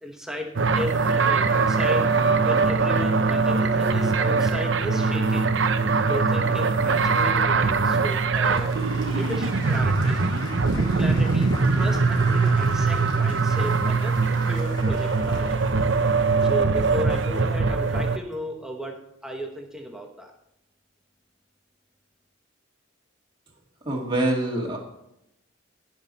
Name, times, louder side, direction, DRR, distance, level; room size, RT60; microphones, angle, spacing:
voice 1, 0.0-5.5 6.1-8.8 9.1-10.3 10.8-14.2 14.4-15.7 16.4-20.3, equal, 5° right, 1 dB, 1.0 m, -35 dB
sound 1, 0.6-18.2, right 4 dB, 60° right, 0.7 m, -22 dB
Applause / Crowd, 7.5-16.3, left 1 dB, 20° left, 2.0 m, -41 dB
voice 2, 23.9-24.8, right 1 dB, 20° right, -2 dB, 2.0 m, -25 dB
17.0 x 5.9 x 4.1 m, 0.84 s
head